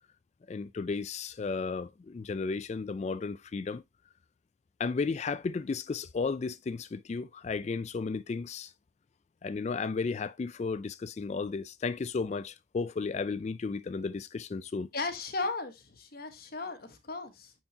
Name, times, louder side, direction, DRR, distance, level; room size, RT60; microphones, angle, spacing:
voice 1, 0.5-3.8 4.8-8.7 9.4-14.9, left 4 dB, 35° left, 0.3 m, -34 dB
voice 2, 14.9-17.5, left 3 dB, 50° left, 1.2 m, -36 dB
8.9 x 4.5 x 2.8 m
head